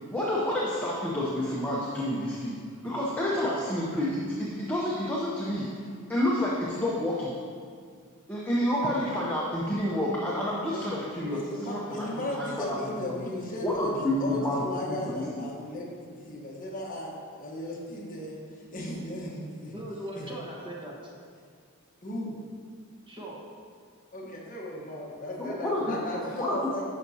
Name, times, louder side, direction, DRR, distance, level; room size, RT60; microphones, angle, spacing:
voice 1, 0.1-2.5 2.8-5.7 6.1-7.3 8.3-12.8 13.1-13.3 13.6-15.0 15.4-15.5 25.4-25.9 26.5-26.6, left 1 dB, 10° left, -6 dB, 0.7 m, -29 dB
voice 2, 11.2-19.7 20.2-20.3 22.0-22.4 24.1-26.8, left 1 dB, 40° left, -3 dB, 1.2 m, -36 dB
voice 3, 19.7-21.1 23.1-23.4 25.8-26.3, right 1 dB, 20° right, -4 dB, 1.1 m, -39 dB
11.0 x 5.8 x 2.8 m, 2.1 s
head